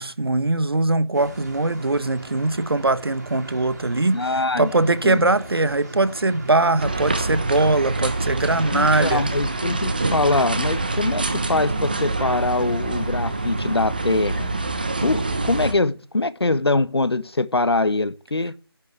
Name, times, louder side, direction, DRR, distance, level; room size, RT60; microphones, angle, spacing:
voice 1, 0.0-4.2 4.6-9.3, right 2 dB, 65° right, 1.3 m, -21 dB
sound 1, 1.1-14.8, right 2 dB, 40° right, 3.6 m, -39 dB
voice 2, 4.1-5.3 8.7-14.5 15.0-18.6, left 2 dB, 75° left, 1.5 m, -23 dB
sound 2, 6.8-15.7, right 2 dB, 20° right, 1.1 m, -26 dB
14.5 x 10.5 x 9.3 m
figure-of-eight pair, 180°, 13 cm